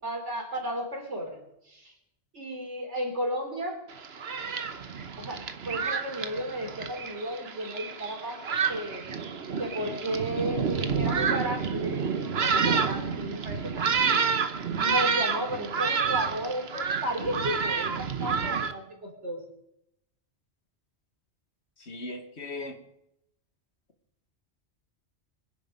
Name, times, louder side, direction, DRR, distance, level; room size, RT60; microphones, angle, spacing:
voice 1, 0.0-1.9 2.3-3.8 5.2-9.0 9.6-14.2 14.7-19.4, equal, 85° right, 2 dB, 4.3 m, -34 dB
Thunderstorm, 3.9-18.7, right 6 dB, 65° right, 1.3 m, -29 dB
voice 2, 21.8-22.8, left 2 dB, 70° left, 7 dB, 2.2 m, -38 dB
25.0 x 10.5 x 5.4 m, 0.81 s
omnidirectional pair, 1.2 m